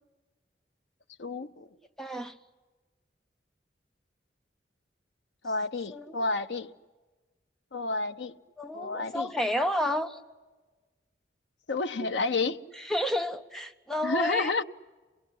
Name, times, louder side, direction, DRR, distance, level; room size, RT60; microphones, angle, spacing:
voice 1, 1.2-1.7 5.4-6.7 7.7-8.3 8.7-9.3 11.7-12.6 14.0-14.6, left 3 dB, 80° left, 0.8 m, -30 dB
voice 2, 2.0-2.3 5.9-6.2 8.6-10.2 12.9-14.6, left 1 dB, ahead, 0.8 m, -31 dB
26.0 x 20.5 x 10.0 m
head